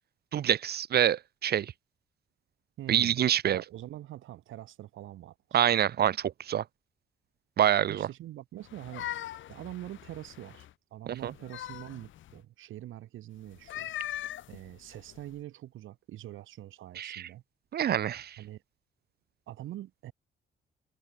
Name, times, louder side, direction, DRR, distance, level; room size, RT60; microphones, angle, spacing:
voice 1, 0.3-1.7 2.9-3.6 5.5-6.6 7.6-8.1 11.1-11.3 17.0-17.2 17.7-18.4, right 10 dB, 55° right, 0.6 m, -26 dB
voice 2, 2.8-3.2 3.4-5.6 7.9-9.1 9.5-13.9 14.5-17.4 18.4-18.6 19.5-20.1, right 14 dB, 80° right, 3.4 m, -44 dB
sound 1, 8.6-10.7 11.2-12.4 13.5-15.3, left 12 dB, 75° left, 2.4 m, -41 dB
cardioid pair, 90°, 20 cm